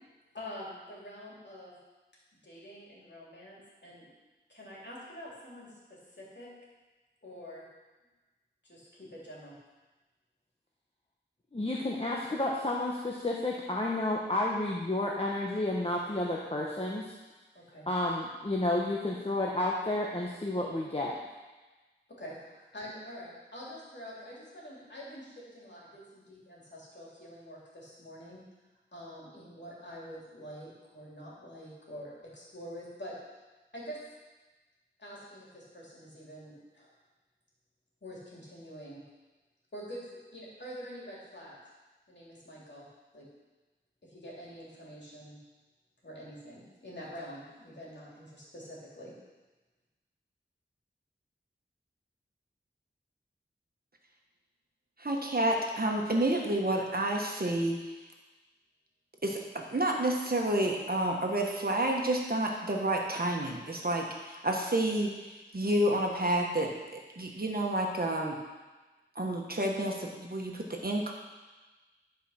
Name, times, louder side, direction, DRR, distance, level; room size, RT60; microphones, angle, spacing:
voice 1, 0.3-1.7 2.4-4.1 4.5-6.5 7.2-7.6 8.6-9.6 17.5-17.9 22.1-28.4 28.9-33.2 33.7-34.0 35.0-36.9 38.0-39.0 39.7-40.0 40.3-41.6 42.1-42.9 43.1-43.3 44.0-45.4 46.0-49.1, equal, 60° left, -6 dB, 3.2 m, -46 dB
voice 2, 11.5-17.0 17.9-21.1, left 1 dB, 30° left, -3 dB, 1.1 m, -31 dB
voice 3, 55.0-58.0 59.2-68.4 69.1-71.1, right 1 dB, 50° right, 0 dB, 1.4 m, -30 dB
11.0 x 5.0 x 5.8 m, 1.2 s
wide cardioid pair, 65°, 20 cm